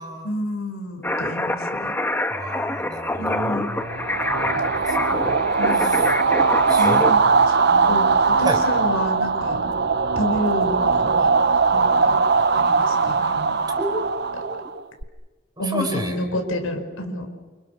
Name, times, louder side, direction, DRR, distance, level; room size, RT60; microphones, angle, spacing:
voice 1, 0.2-1.9 3.1-3.7 5.5-5.9 6.8-7.2 7.5-7.6 7.9-9.6 10.2-11.3 11.7-12.1 12.5-13.6 15.6-17.3, left 1 dB, 80° left, 5 dB, 5.2 m, -29 dB
sound 1, 1.0-7.1, left 1 dB, 10° left, 1.2 m, -26 dB
voice 2, 2.3-4.1 4.4-5.3 5.7-6.0 6.7-7.0 7.7-8.0 8.4-8.6 13.2-13.4 13.8-14.0 14.4-14.7 15.6-16.2, right 1 dB, 20° right, 3 dB, 5.0 m, -31 dB
sound 2, 3.9-15.0, right 4 dB, 50° right, 0.8 m, -20 dB
29.5 x 28.5 x 6.7 m, 1.3 s
head